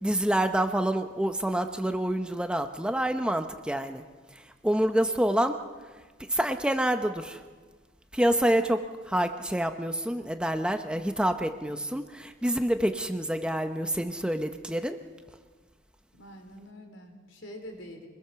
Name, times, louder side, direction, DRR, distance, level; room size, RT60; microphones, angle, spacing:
voice 1, 0.0-4.0 4.6-5.6 6.3-7.4 8.1-15.0, right 1 dB, 5° right, 7 dB, 0.8 m, -27 dB
voice 2, 16.1-18.1, equal, 75° left, 4 dB, 4.1 m, -45 dB
25.0 x 21.0 x 7.0 m, 1.4 s
head